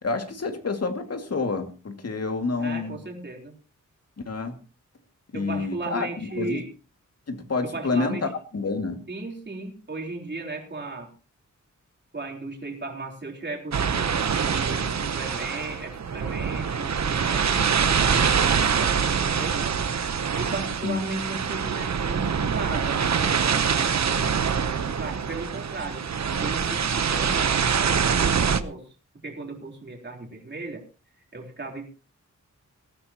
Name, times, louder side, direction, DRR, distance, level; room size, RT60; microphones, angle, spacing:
voice 1, 0.0-3.0 4.3-4.6 5.3-6.6 7.3-8.3 8.5-9.0 20.8-21.0, left 4 dB, 50° left, 6 dB, 2.3 m, -28 dB
voice 2, 2.6-3.5 5.3-6.7 7.6-8.3 9.1-11.1 12.1-19.8 20.3-26.0 26.4-28.9 29.2-30.8 31.3-31.9, right 2 dB, 35° right, 1 dB, 3.7 m, -36 dB
sound 1, 13.7-28.6, right 6 dB, 60° right, 1.0 m, -24 dB
20.5 x 14.5 x 3.0 m, 0.34 s
wide cardioid pair, 130°, 31 cm